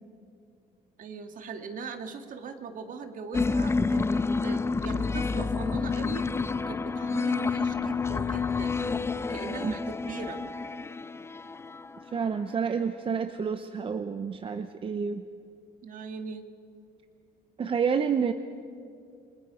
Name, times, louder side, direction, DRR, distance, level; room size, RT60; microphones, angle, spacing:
voice 1, 1.0-6.2 6.6-8.8 9.3-10.4 15.8-16.5, right 5 dB, 50° right, 7 dB, 1.8 m, -40 dB
sound 1, 3.3-12.4, left 4 dB, 15° left, 0.4 m, -29 dB
voice 2, 12.1-15.2 17.6-18.3, right 6 dB, 30° right, 9 dB, 0.7 m, -29 dB
28.0 x 20.0 x 5.0 m, 2.4 s
cardioid pair, 110°, 17 cm